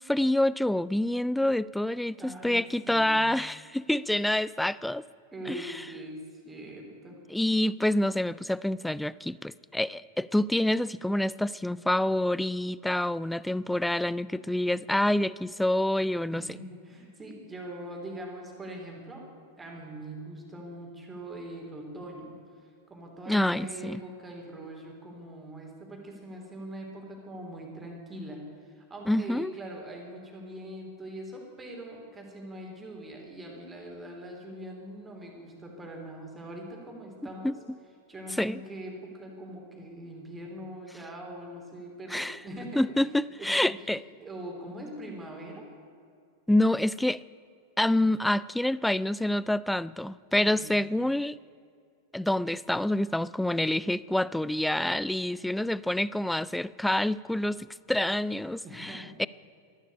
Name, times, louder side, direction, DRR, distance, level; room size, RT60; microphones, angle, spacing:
voice 1, 0.0-5.1 5.5-5.7 7.3-16.4 23.3-24.0 29.1-29.5 37.4-37.5 38.4-38.6 42.1-42.4 42.8-44.0 46.5-47.2 47.8-51.4 52.1-59.3, left 1 dB, 5° left, 20 dB, 0.3 m, -27 dB
voice 2, 2.2-3.2 5.3-7.2 16.3-19.3 19.5-37.5 38.1-43.8 44.1-45.7 50.4-50.8 58.6-59.2, right 1 dB, 15° right, 0 dB, 3.4 m, -42 dB
13.5 x 12.0 x 8.6 m, 2.3 s
figure-of-eight pair, 90°, 0 cm